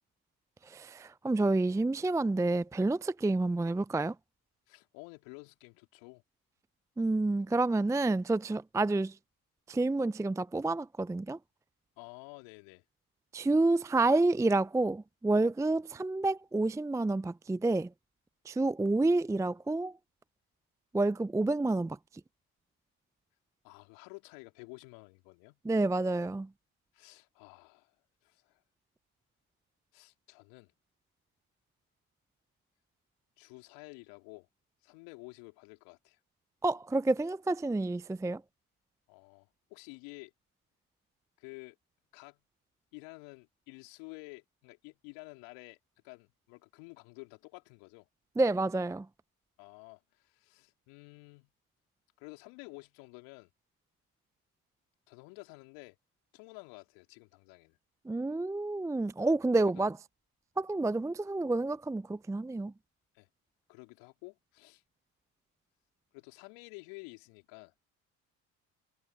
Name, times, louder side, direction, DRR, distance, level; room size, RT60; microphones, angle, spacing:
voice 1, 0.6-4.1 7.0-9.2 9.7-11.4 13.3-17.9 18.5-19.9 20.9-22.0 25.6-26.5 36.6-38.4 48.4-49.1 58.1-60.0 60.6-62.7, right 2 dB, 5° right, 0.6 m, -29 dB
voice 2, 4.7-6.2 12.0-12.8 23.6-25.6 26.9-28.0 28.2-28.6 29.9-30.7 33.4-34.5 34.8-36.2 39.1-40.3 41.4-41.8 42.1-42.4 42.9-45.8 46.0-48.1 49.6-51.5 52.2-53.5 55.1-56.0 56.3-57.8 59.5-59.9 63.1-63.3 63.7-64.8 66.1-67.7, left 31 dB, 70° left, 4.0 m, -51 dB
hypercardioid pair, 60°, 44 cm